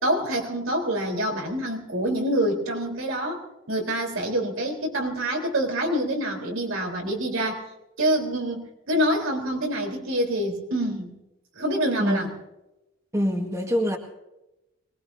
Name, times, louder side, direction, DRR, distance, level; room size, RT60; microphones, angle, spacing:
voice 1, 0.0-7.6 8.0-11.1 11.6-12.3, right 1 dB, 85° right, 1 dB, 4.1 m, -26 dB
voice 2, 12.0-12.3 13.1-14.0, equal, 15° right, 2 dB, 1.9 m, -25 dB
25.5 x 20.5 x 2.8 m, 0.95 s
head